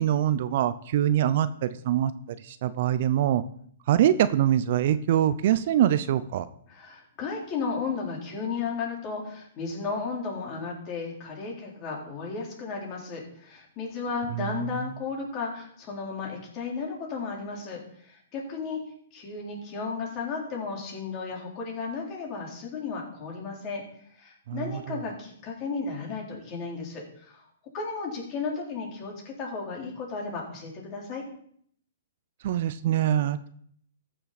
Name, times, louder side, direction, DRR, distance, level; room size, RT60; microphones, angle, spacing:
voice 1, 0.0-2.1 2.4-3.4 3.9-6.5 14.3-14.5 24.5-25.0 32.4-33.5, right 11 dB, 55° right, 14 dB, 0.6 m, -24 dB
voice 2, 6.7-18.8 19.1-23.8 24.2-27.4 27.7-31.2, left 4 dB, 35° left, -2 dB, 3.9 m, -34 dB
14.0 x 6.7 x 4.2 m, 0.63 s
hypercardioid pair, 125°, 0 cm